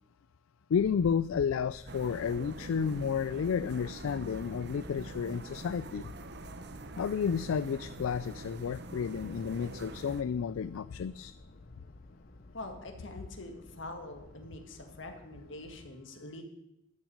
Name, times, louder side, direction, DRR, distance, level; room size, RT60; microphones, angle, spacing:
voice 1, 0.7-6.1 7.0-11.3, left 6 dB, 85° left, 16 dB, 0.4 m, -31 dB
sound 1, 0.7-15.9, left 2 dB, 45° left, 0.7 m, -53 dB
sound 2, 1.9-10.2, right 2 dB, 55° right, 0.8 m, -45 dB
voice 2, 12.5-16.4, left 2 dB, 65° left, 5 dB, 2.0 m, -44 dB
13.5 x 6.1 x 9.8 m, 0.85 s
head